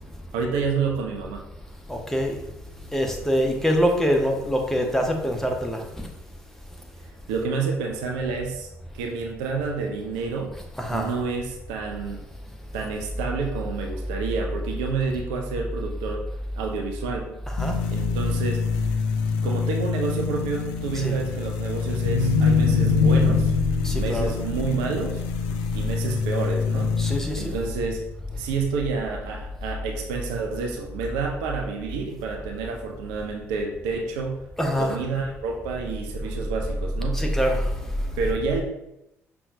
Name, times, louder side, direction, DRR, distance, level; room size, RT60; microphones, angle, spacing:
voice 1, 0.3-1.4 7.3-8.7 8.9-10.6 10.9-12.2 12.7-16.3 16.5-17.3 17.9-18.7 19.4-23.5 23.9-25.2 25.7-27.0 27.3-28.1 28.3-34.5 34.8-37.2 38.2-38.6, right 4 dB, 65° right, 2 dB, 0.5 m, -29 dB
voice 2, 1.9-2.4 2.9-6.1 10.8-11.1 17.5-17.8 20.9-21.2 23.8-24.3 27.0-27.5 34.6-35.0 37.1-37.9, equal, 5° left, 2 dB, 0.7 m, -24 dB
sound 1, 17.6-27.2, left 5 dB, 65° left, 0.4 m, -24 dB
5.5 x 2.2 x 2.6 m, 0.86 s
figure-of-eight pair, 45°, 8 cm